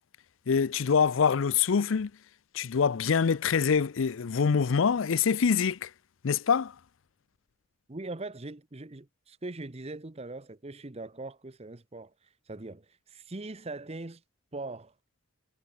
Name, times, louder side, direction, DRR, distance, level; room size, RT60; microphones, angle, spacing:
voice 1, 0.5-2.1 2.5-5.9 6.2-6.7, left 6 dB, 70° left, 0.5 m, -25 dB
voice 2, 7.9-14.2 14.5-14.9, right 2 dB, 30° right, 0.9 m, -41 dB
head